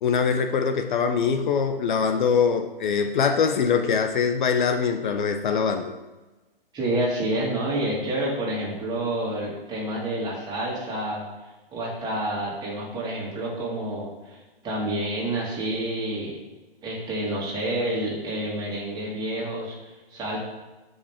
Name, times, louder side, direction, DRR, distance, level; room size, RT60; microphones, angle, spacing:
voice 1, 0.0-5.9, left 6 dB, 55° left, 6 dB, 0.9 m, -23 dB
voice 2, 6.7-11.2 11.7-16.4 16.8-20.4, right 1 dB, 15° right, -4 dB, 2.8 m, -29 dB
12.5 x 5.4 x 3.7 m, 1.2 s
hypercardioid pair, 140°, 29 cm